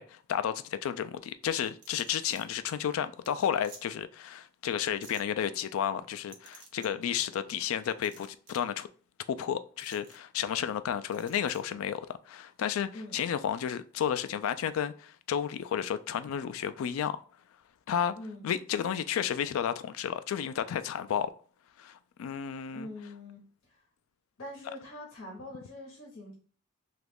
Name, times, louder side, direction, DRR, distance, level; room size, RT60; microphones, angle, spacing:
voice 1, 0.0-8.9 9.3-17.2 17.9-18.1 18.4-21.3 21.8-22.9, left 9 dB, 90° left, 0.3 m, -32 dB
sound 1, 1.6-2.4 2.8-2.9 3.2-3.3 3.6-3.8 5.0-5.2 6.3-6.9 7.8-8.7 9.8-10.2 11.1-11.6, right 4 dB, 55° right, 0.7 m, -52 dB
voice 2, 18.1-18.5 22.7-23.4 23.7-23.8 24.4-26.3, left 1 dB, 70° left, 0.9 m, -43 dB
3.0 x 2.4 x 3.4 m
head